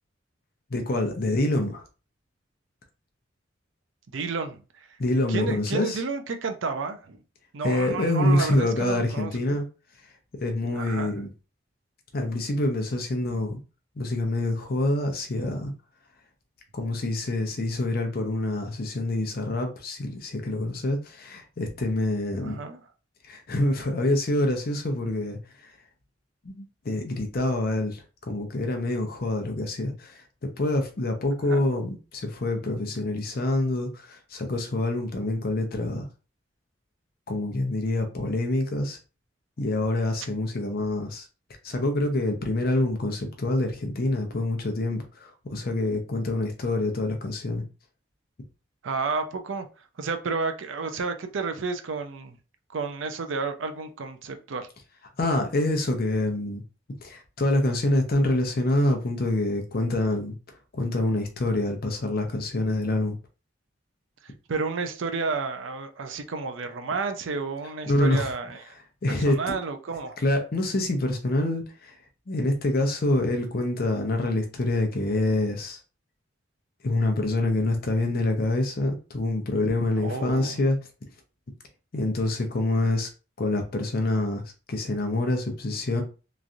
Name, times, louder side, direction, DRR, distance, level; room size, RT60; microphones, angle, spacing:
voice 1, 0.7-1.8 5.0-6.0 7.6-9.7 10.4-11.3 12.1-13.6 14.0-15.7 16.7-22.6 23.3-25.4 26.4-30.2 30.6-36.1 37.3-39.0 39.6-41.3 41.6-47.6 55.2-56.6 57.0-60.4 60.7-63.2 67.9-68.3 69.0-69.5 70.2-72.0 72.3-75.8 76.8-80.8 81.9-83.1 83.4-84.4 84.7-86.0, left 2 dB, 50° left, 0.6 m, -26 dB
voice 2, 4.1-4.6 5.3-7.2 7.5-9.6 10.7-11.2 22.4-22.8 31.5-31.6 48.8-49.7 50.0-52.4 52.7-54.7 64.5-68.6 69.2-70.2 80.0-80.6, right 4 dB, 80° right, 0.5 m, -31 dB
3.1 x 2.4 x 2.6 m
head